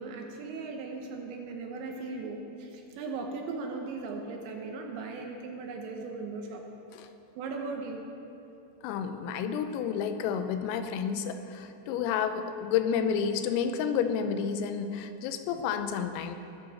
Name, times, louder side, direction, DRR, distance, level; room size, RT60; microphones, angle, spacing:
voice 1, 0.0-6.6 7.4-8.0, right 3 dB, 75° right, 2 dB, 3.0 m, -38 dB
voice 2, 8.8-16.4, left 7 dB, 90° left, 8 dB, 3.5 m, -30 dB
21.0 x 13.0 x 4.2 m, 2.8 s
omnidirectional pair, 5.9 m